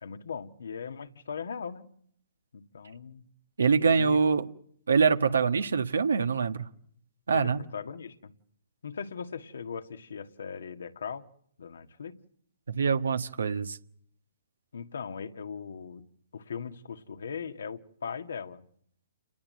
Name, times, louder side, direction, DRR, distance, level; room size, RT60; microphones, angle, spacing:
voice 1, 0.0-1.9 2.5-3.2 3.8-4.2 7.3-8.3 8.8-11.3 11.6-12.1 14.7-16.0 16.3-18.6, left 6 dB, 75° left, 8 dB, 1.7 m, -39 dB
voice 2, 3.6-4.5 4.9-6.6 7.3-7.6 12.7-13.8, right 5 dB, 85° right, 8 dB, 1.4 m, -24 dB
29.0 x 20.0 x 7.6 m, 0.69 s
hypercardioid pair, 145°, 0 cm